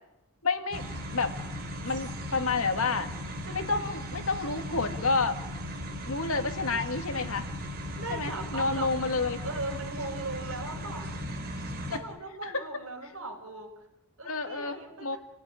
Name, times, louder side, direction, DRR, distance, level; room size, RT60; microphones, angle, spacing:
voice 1, 0.4-0.8 1.1-1.4 1.8-3.1 3.5-5.4 6.1-7.5 8.1-9.4 11.9-12.0 12.4-12.7 14.2-15.2, left 3 dB, 75° left, 7 dB, 2.2 m, -29 dB
sound 1, 0.7-12.0, equal, 45° right, 3.9 m, -37 dB
voice 2, 8.0-9.1 9.4-11.2 11.6-13.7 14.2-15.2, right 2 dB, 65° right, 3 dB, 5.2 m, -39 dB
28.0 x 18.0 x 9.9 m, 0.92 s
head